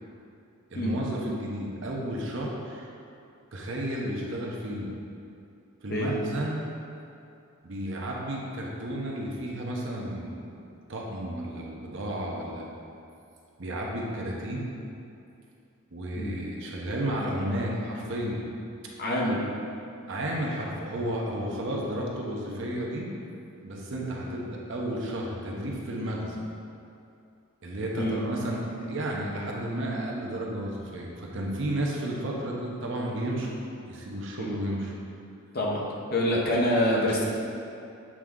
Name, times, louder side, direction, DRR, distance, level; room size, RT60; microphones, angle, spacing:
voice 1, 0.7-2.9 3.5-4.9 5.8-6.6 7.6-10.6 10.9-12.6 13.6-14.7 15.9-18.4 20.1-23.1 23.6-26.4 27.6-33.5 33.9-34.9, right 1 dB, 55° right, -2 dB, 0.8 m, -32 dB
voice 2, 19.0-19.4 28.0-28.2 34.4-34.5 35.5-35.8 36.1-37.2, left 1 dB, 45° left, -3 dB, 0.9 m, -26 dB
7.4 x 3.7 x 3.7 m, 2.6 s
head